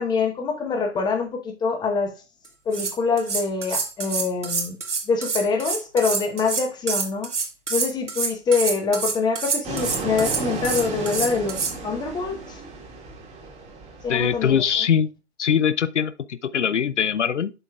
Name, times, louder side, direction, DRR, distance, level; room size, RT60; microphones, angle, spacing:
voice 1, 0.0-2.1 2.7-4.8 5.1-7.3 7.7-12.6 14.0-14.5, left 4 dB, 10° left, 1.0 m, -25 dB
sound 1, 2.4-2.5 2.7-11.7, right 5 dB, 85° right, 1.5 m, -27 dB
Fixed-wing aircraft airplane, 9.6-14.8, right 3 dB, 20° right, 1.6 m, -34 dB
voice 2, 14.1-15.1 15.4-17.5, left 8 dB, 85° left, 0.6 m, -22 dB
11.0 x 4.2 x 2.4 m
figure-of-eight pair, 125°, 35 cm